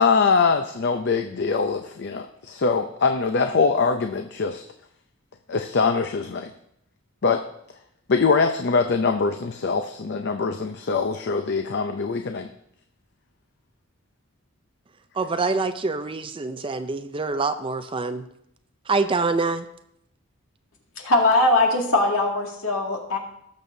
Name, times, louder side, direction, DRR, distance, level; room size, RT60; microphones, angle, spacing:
voice 1, 0.0-4.6 5.5-6.5 7.2-7.4 8.1-12.5, left 4 dB, 55° left, 7 dB, 0.5 m, -23 dB
voice 2, 15.1-18.2 18.9-19.7, right 3 dB, 25° right, 9 dB, 0.5 m, -25 dB
voice 3, 21.0-23.2, left 2 dB, 80° left, -1 dB, 2.1 m, -21 dB
18.0 x 6.8 x 2.7 m, 0.76 s
head